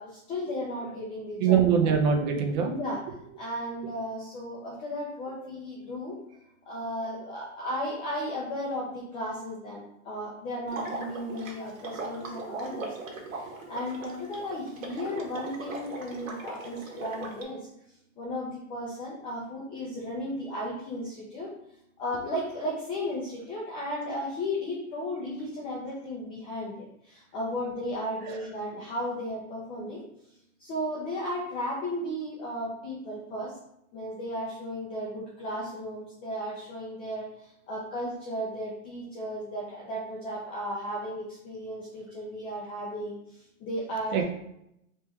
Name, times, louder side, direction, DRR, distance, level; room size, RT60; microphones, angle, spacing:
voice 1, 0.0-1.6 2.7-3.0 3.4-6.2 6.7-17.6 18.2-21.5 22.0-30.0 30.6-33.6 33.9-44.2, equal, 15° left, -5 dB, 0.4 m, -35 dB
voice 2, 1.4-2.7 5.4-5.5 28.3-28.4 44.1-44.2, right 7 dB, 35° right, 3 dB, 0.7 m, -23 dB
Water / Liquid, 10.7-17.4, right 3 dB, 75° right, 1.4 m, -39 dB
3.3 x 3.1 x 4.6 m, 0.78 s
hypercardioid pair, 150°, 40 cm